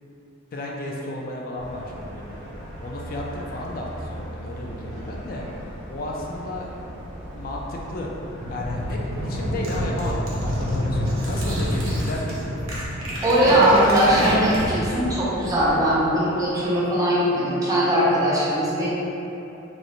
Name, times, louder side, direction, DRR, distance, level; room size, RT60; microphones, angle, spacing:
voice 1, 0.5-2.4 2.8-5.5 5.9-6.7 7.3-8.1 8.5-12.5, left 1 dB, 45° left, -2 dB, 0.3 m, -33 dB
sound 1, 1.6-16.0, equal, 10° left, 1.1 m, -38 dB
sound 2, 8.4-14.8, equal, 75° right, 0.6 m, -27 dB
voice 2, 13.2-18.9, right 1 dB, 15° right, -8 dB, 0.5 m, -20 dB
2.5 x 2.0 x 2.9 m, 3.0 s
head